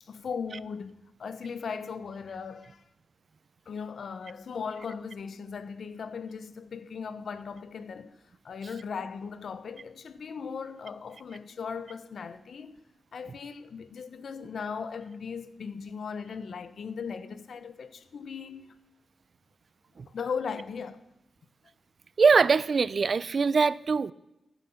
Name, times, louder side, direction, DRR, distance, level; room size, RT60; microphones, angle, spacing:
voice 1, 0.0-2.8 3.7-8.1 8.4-12.8 13.1-18.8 20.1-21.0, left 6 dB, 70° left, 0.9 m, -38 dB
voice 2, 22.2-24.1, right 5 dB, 55° right, 0.5 m, -22 dB
14.5 x 8.2 x 7.1 m
cardioid pair, 85°, 0 cm